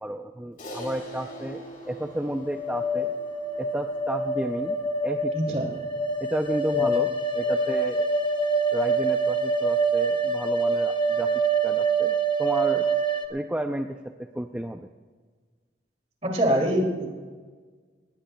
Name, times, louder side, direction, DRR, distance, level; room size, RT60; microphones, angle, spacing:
voice 1, 0.0-3.1 3.6-4.8 5.0-5.6 6.2-8.0 8.7-11.3 11.6-12.9 13.3-14.9, right 1 dB, 10° right, 4 dB, 0.4 m, -32 dB
Crash cymbal, 0.6-5.2, right 1 dB, 50° left, 4.0 m, -43 dB
sound 1, 2.4-13.3, right 3 dB, 25° left, 1.0 m, -25 dB
voice 2, 5.3-5.7 6.8-6.9 16.2-17.2, right 1 dB, 35° right, 1 dB, 2.6 m, -24 dB
19.5 x 19.0 x 2.2 m, 1.5 s
head